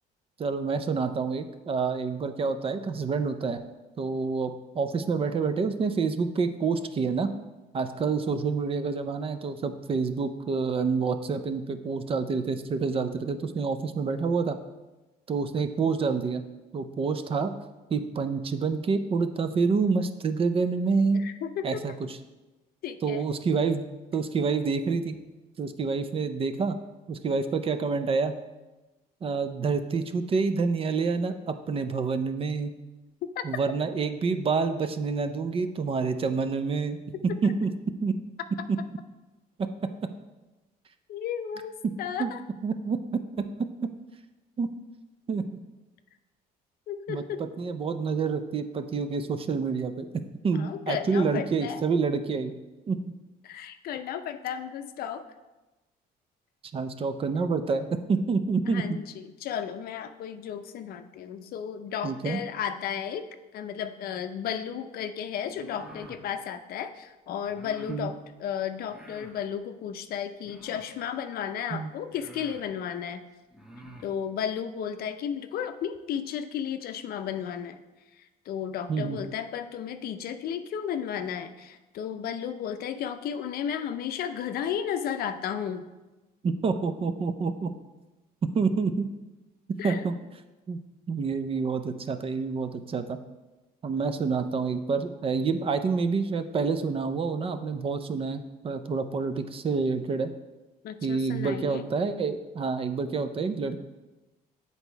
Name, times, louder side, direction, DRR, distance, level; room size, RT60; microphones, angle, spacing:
voice 1, 0.4-3.6 4.0-7.3 7.7-14.6 15.3-16.4 16.7-17.5 17.9-21.2 21.6-21.9 23.0-23.8 24.1-25.2 25.6-26.8 27.1-28.3 29.2-32.7 33.4-37.0 37.2-37.7 38.0-38.2 38.7-38.8 42.2-42.3 42.6-43.2 44.6-44.7 45.3-45.6 47.1-50.1 50.4-52.5 52.9-53.0 56.7-59.0 62.0-62.4 67.9-68.1 71.7-71.9 78.9-79.2 86.4-87.7 88.5-89.1 89.8-90.2 90.7-90.8 91.1-93.2 93.8-100.3 101.0-103.8, right 4 dB, 35° right, 9 dB, 0.5 m, -28 dB
voice 2, 21.1-21.8 22.8-23.3 33.4-33.5 37.4-37.5 41.1-42.4 46.9-47.4 50.5-51.8 53.4-55.2 58.6-63.3 63.5-73.2 74.0-77.8 78.2-85.8 89.8-90.0 100.8-101.9, left 8 dB, 65° left, 9 dB, 0.6 m, -34 dB
sound 1, 65.5-66.2 67.5-68.0 68.8-69.4 70.4-71.0 71.7-71.8 72.1-72.7 73.5-74.1, equal, 5° right, 0.8 m, -48 dB
7.9 x 4.1 x 4.6 m, 1.1 s
cardioid pair, 110°, 17 cm